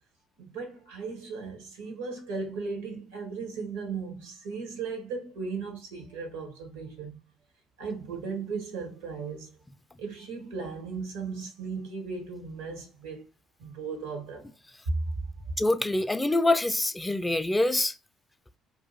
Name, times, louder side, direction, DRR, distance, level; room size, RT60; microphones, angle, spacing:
voice 1, 0.4-7.2 7.8-9.6 10.0-13.2 13.6-14.5 15.4-15.5, right 5 dB, 80° right, 0.9 m, -37 dB
voice 2, 15.6-17.9, left 2 dB, 15° left, 0.4 m, -25 dB
2.7 x 2.4 x 4.1 m
hypercardioid pair, 50°, 0 cm